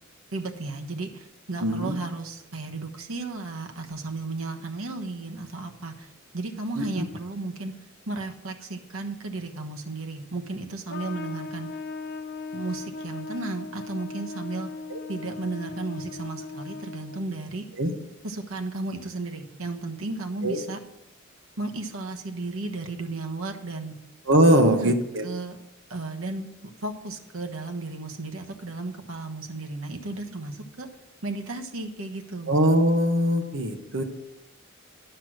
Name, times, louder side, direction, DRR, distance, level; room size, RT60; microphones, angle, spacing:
voice 1, 0.3-7.7 8.1-11.7 12.5-14.7 15.1-17.6 18.2-20.8 21.6-24.0 24.6-24.9 25.2-25.6 25.9-26.5 26.8-30.9 31.2-32.5, right 2 dB, 85° right, 4 dB, 1.3 m, -34 dB
voice 2, 1.6-1.9 6.8-7.1 14.9-15.0 17.8-17.9 20.4-20.6 24.3-25.3 32.5-34.0, right 1 dB, 65° right, 5 dB, 1.2 m, -21 dB
Trumpet, 10.9-17.4, left 4 dB, 55° left, 0.8 m, -38 dB
10.0 x 6.1 x 6.4 m, 0.88 s
head